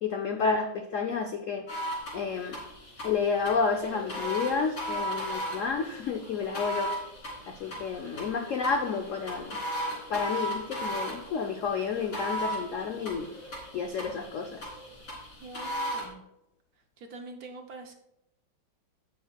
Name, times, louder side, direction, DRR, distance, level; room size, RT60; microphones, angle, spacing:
voice 1, 0.0-1.7 2.1-2.6 3.0-6.9 7.5-9.6 10.1-13.3 13.7-14.7, left 5 dB, 80° left, 5 dB, 0.7 m, -30 dB
sound 1, 1.7-16.1, equal, 35° left, 3.0 m, -37 dB
sound 2, 3.0-15.0, equal, 35° right, 2.7 m, -52 dB
voice 2, 15.4-16.2 17.0-17.9, right 3 dB, 65° right, 5 dB, 1.0 m, -44 dB
16.5 x 5.5 x 2.3 m, 0.84 s
omnidirectional pair, 2.1 m